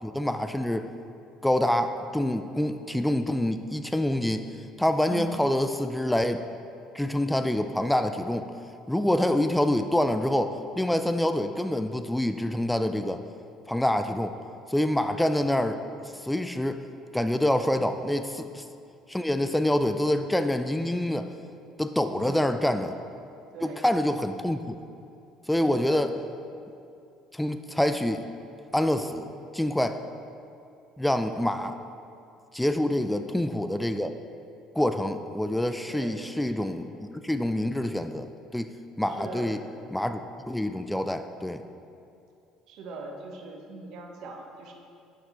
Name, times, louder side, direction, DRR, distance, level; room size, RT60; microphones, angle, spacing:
voice 1, 0.0-0.9 1.4-4.5 4.8-6.4 6.9-8.5 8.9-13.2 13.7-14.3 14.7-15.8 16.1-16.8 17.1-18.7 19.1-21.3 21.8-23.0 23.6-24.7 25.5-26.1 27.3-28.2 28.7-29.3 29.5-30.0 31.0-31.8 32.5-34.1 34.7-38.3 38.5-38.7 39.0-39.6 39.9-40.2 40.5-41.6, left 1 dB, 5° left, 9 dB, 0.3 m, -26 dB
voice 2, 22.1-22.7 23.5-23.9 25.7-26.1 33.0-33.2 35.9-36.3 39.2-39.6 42.7-44.7, right 3 dB, 65° right, 2 dB, 1.0 m, -41 dB
6.8 x 5.9 x 4.1 m, 2.6 s
hypercardioid pair, 70°, 0 cm